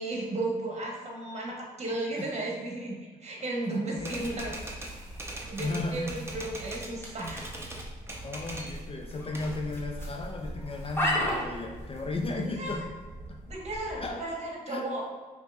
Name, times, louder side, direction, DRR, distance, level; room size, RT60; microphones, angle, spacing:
voice 1, 0.0-2.9 3.2-4.5 5.5-7.5 12.4-12.8 13.5-15.0, right 2 dB, 40° right, -1 dB, 1.2 m, -34 dB
voice 2, 3.7-4.3 5.6-6.1 8.2-12.8 14.0-14.2 14.7-14.9, left 2 dB, 30° left, 2 dB, 0.5 m, -35 dB
Typewriter, 4.0-6.9 7.2-8.8 9.1-10.2, right 1 dB, 15° right, 0.8 m, -41 dB
sound 1, 4.1-14.1, equal, 15° left, 1.2 m, -37 dB
5.2 x 3.0 x 2.4 m, 1.4 s
supercardioid pair, 65°, 18 cm